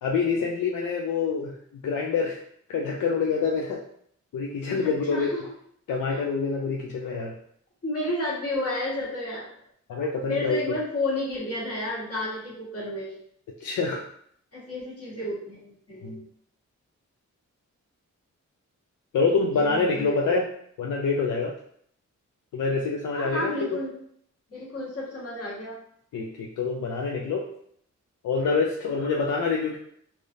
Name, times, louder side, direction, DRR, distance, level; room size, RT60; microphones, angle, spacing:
voice 1, 0.0-1.5 1.8-2.4 2.7-3.8 4.3-5.3 5.9-7.3 9.9-10.6 13.6-14.0 16.0-16.2 19.1-20.5 20.8-21.5 22.5-23.8 26.1-27.5 28.2-29.8, left 4 dB, 80° left, -1 dB, 0.5 m, -26 dB
voice 2, 4.7-5.4 6.1-6.2 7.8-9.5 10.3-13.2 14.5-16.2 19.5-20.4 23.1-23.9 24.5-25.8, left 1 dB, 50° left, -6 dB, 1.4 m, -31 dB
3.3 x 2.5 x 2.6 m, 0.66 s
wide cardioid pair, 110°, 31 cm